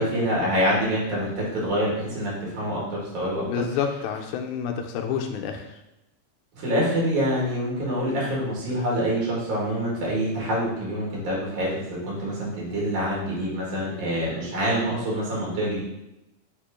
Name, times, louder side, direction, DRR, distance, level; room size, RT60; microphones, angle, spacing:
voice 1, 0.0-3.7 6.6-15.8, equal, 80° right, -5 dB, 3.5 m, -26 dB
voice 2, 3.5-5.7, left 7 dB, 85° left, 4 dB, 2.1 m, -28 dB
6.7 x 2.9 x 4.9 m, 0.90 s
omnidirectional pair, 3.5 m